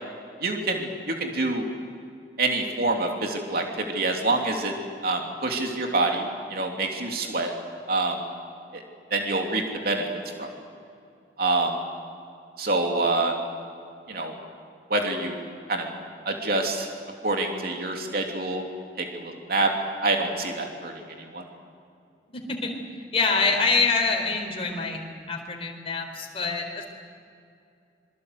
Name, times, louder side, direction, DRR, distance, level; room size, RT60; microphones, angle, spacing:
voice 1, 0.4-1.6 2.4-4.7 5.0-7.5 7.9-8.2 8.7-8.8 9.1-10.0 10.4-10.5 11.4-11.7 12.6-13.4 14.1-14.3 14.9-15.3 15.7-15.9 16.2-16.9 17.2-18.6 19.0-19.7 20.0-20.9 21.3-21.4, right 2 dB, 55° right, 2 dB, 3.0 m, -26 dB
voice 2, 22.3-22.7 23.1-25.0 25.3-26.8, left 4 dB, 35° left, 2 dB, 4.3 m, -25 dB
26.5 x 23.5 x 8.2 m, 2.5 s
head